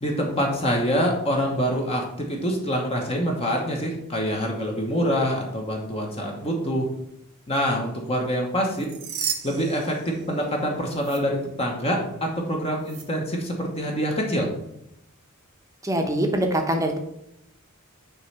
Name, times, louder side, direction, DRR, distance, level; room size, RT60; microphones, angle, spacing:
voice 1, 0.0-6.9 7.5-8.9 9.4-14.5, equal, 30° left, 0 dB, 1.1 m, -25 dB
sound 1, 8.6-10.6 11.0-11.2 12.8-13.0, right 8 dB, 70° right, 1.0 m, -34 dB
voice 2, 15.8-17.0, right 1 dB, 15° right, 4 dB, 0.8 m, -23 dB
6.6 x 3.1 x 5.7 m, 0.77 s
head